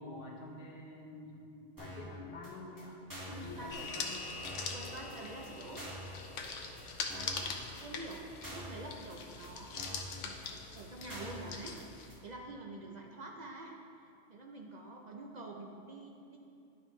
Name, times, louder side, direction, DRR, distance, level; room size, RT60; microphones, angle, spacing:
voice 1, 0.0-3.0 3.3-4.2 7.4-7.6, left 2 dB, 55° left, -1 dB, 1.1 m, -47 dB
sound 1, 1.8-2.1 2.4-2.5 2.8-2.9 3.1-3.4 3.8-3.9 4.1-4.2 4.4-4.8 5.1-5.2 5.4-5.5 5.8-6.1 6.4-6.5 6.8-6.9 7.1-7.4 7.8-7.9 8.1-8.2 8.4-8.8 9.1-9.2 9.4-9.5 9.8-10.1 10.4-10.5 10.8-10.9 11.1-11.4 11.8-11.9 12.1-12.2, equal, 15° right, 1.7 m, -46 dB
sound 2, 3.3-12.1, left 5 dB, 90° left, 1.0 m, -43 dB
voice 2, 3.3-3.9 4.7-5.9 7.1-7.4 7.8-10.4 10.8-11.8 12.2-16.4, right 2 dB, 45° right, 0 dB, 0.6 m, -47 dB
sound 3, 3.7-8.4, left 2 dB, 35° left, 1.5 m, -49 dB
11.0 x 5.3 x 3.1 m, 2.5 s
omnidirectional pair, 1.2 m